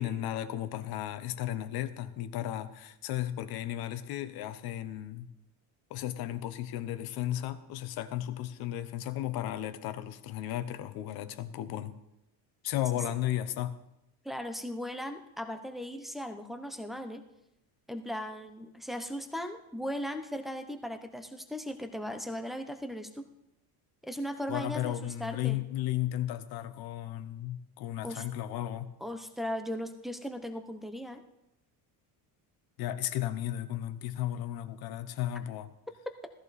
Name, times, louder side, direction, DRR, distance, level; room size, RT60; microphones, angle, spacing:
voice 1, 0.0-5.3 5.9-11.9 12.6-13.7 24.5-28.9 32.8-35.7, left 13 dB, 55° left, 12 dB, 1.0 m, -34 dB
voice 2, 14.2-17.2 17.9-23.2 24.0-25.6 28.0-28.2 29.0-31.2 36.1-36.2, equal, ahead, 6 dB, 0.6 m, -37 dB
16.0 x 14.0 x 4.1 m, 0.86 s
cardioid pair, 175°, 44 cm